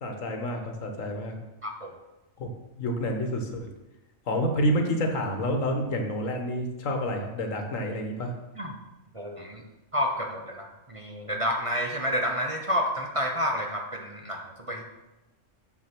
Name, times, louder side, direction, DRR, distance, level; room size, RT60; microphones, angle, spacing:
voice 1, 0.0-1.4 2.4-2.5 2.8-3.7 4.3-8.3, equal, 80° left, 3 dB, 1.6 m, -28 dB
voice 2, 1.6-1.9 8.6-8.7 9.1-9.6 9.9-14.8, equal, 30° right, 1 dB, 0.8 m, -30 dB
7.4 x 6.0 x 6.0 m, 1.0 s
omnidirectional pair, 1.4 m